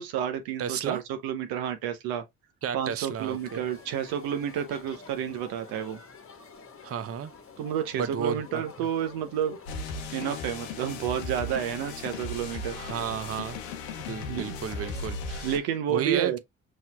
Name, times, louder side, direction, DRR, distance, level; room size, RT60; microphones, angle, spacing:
voice 1, 0.0-2.2 2.7-6.0 7.6-9.6 10.1-12.8 14.3-14.6 15.4-16.4, right 9 dB, 75° right, 0.8 m, -30 dB
voice 2, 0.6-1.0 2.6-3.6 6.8-7.3 8.0-8.6 12.7-13.6 14.0-15.5 15.9-16.4, right 8 dB, 40° right, 0.7 m, -32 dB
sound 1, 3.1-12.0, left 5 dB, 35° left, 1.2 m, -49 dB
sound 2, 9.7-15.6, left 3 dB, 85° left, 0.8 m, -36 dB
5.5 x 3.2 x 2.2 m
hypercardioid pair, 40°, 37 cm